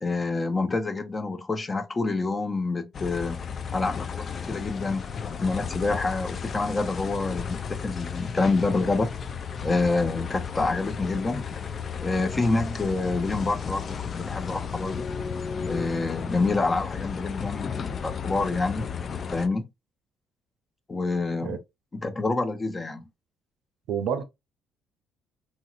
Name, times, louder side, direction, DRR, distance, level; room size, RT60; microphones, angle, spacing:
voice 1, 0.0-3.4 3.7-5.0 5.4-9.1 9.6-11.4 12.0-15.1 15.6-18.9 19.3-19.7 20.9-21.6 21.9-23.0, left 3 dB, 25° left, 0.8 m, -27 dB
sound 1, 2.9-19.5, left 6 dB, 50° left, 0.4 m, -34 dB
voice 2, 23.9-24.2, right 8 dB, 75° right, 0.6 m, -28 dB
3.0 x 2.7 x 2.4 m
supercardioid pair, 70°, 0 cm